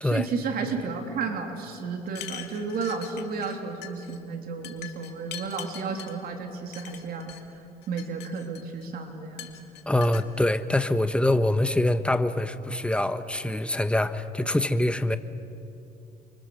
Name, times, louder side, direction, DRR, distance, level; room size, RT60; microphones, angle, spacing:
voice 1, 0.0-7.3 7.9-9.5, right 5 dB, 60° right, 3 dB, 3.2 m, -32 dB
sound 1, 2.1-3.6 3.8-4.2 4.6-6.1 6.7-7.4 7.8-8.8 9.4-10.2, left 12 dB, 75° left, 2.1 m, -42 dB
voice 2, 9.9-15.2, left 1 dB, 5° left, 10 dB, 1.1 m, -24 dB
30.0 x 24.5 x 6.6 m, 2.8 s
cardioid pair, 110°, 17 cm